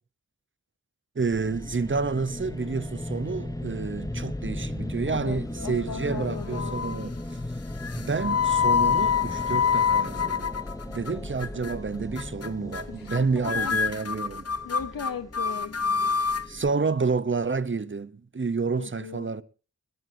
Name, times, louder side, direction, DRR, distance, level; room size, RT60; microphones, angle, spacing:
voice 1, 1.1-7.1 8.0-10.5 10.9-14.5 16.5-19.4, right 4 dB, 35° right, 0.9 m, -29 dB
sound 1, 1.3-16.7, left 1 dB, 10° left, 0.8 m, -36 dB
voice 2, 5.0-7.1 12.9-13.8 14.6-15.8 18.8-19.3, left 7 dB, 85° left, 0.9 m, -38 dB
sound 2, 5.6-6.2 6.5-7.0 7.8-11.1 11.4-11.7 12.2-12.5 12.7-13.2 13.4-16.5, left 6 dB, 45° left, 0.7 m, -26 dB
29.5 x 11.0 x 2.8 m
wide cardioid pair, 55°, 33 cm